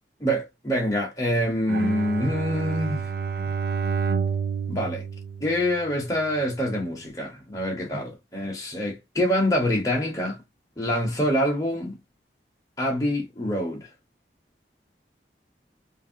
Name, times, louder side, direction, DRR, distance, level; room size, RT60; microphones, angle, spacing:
voice 1, 0.2-3.0 4.7-5.1 5.4-10.4 10.8-12.0 12.8-13.9, equal, 20° left, 0.9 m, -25 dB
Bowed string instrument, 1.7-6.1, right 6 dB, 60° right, 0.4 m, -29 dB
2.9 x 2.6 x 2.7 m
head